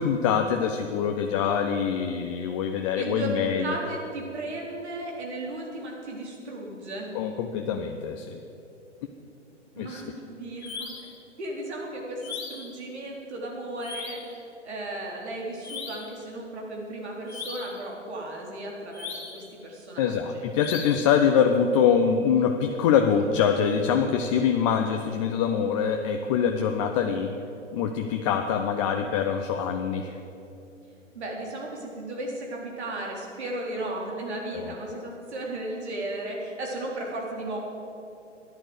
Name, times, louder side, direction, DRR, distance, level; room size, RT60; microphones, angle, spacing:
voice 1, 0.0-3.7 7.1-8.4 9.8-10.0 20.0-27.3 27.7-30.1 34.5-35.0, left 7 dB, 25° left, 4 dB, 0.6 m, -24 dB
voice 2, 2.9-7.1 9.7-11.1 11.4-20.5 31.1-37.6, right 1 dB, 60° right, -1 dB, 3.9 m, -35 dB
sound 1, 10.6-11.2 12.2-12.8 13.8-14.3 15.6-16.2 17.3-17.8 18.9-19.5 20.6-21.1, left 5 dB, 55° left, 2.6 m, -38 dB
13.5 x 10.5 x 8.1 m, 2.8 s
figure-of-eight pair, 115°, 37 cm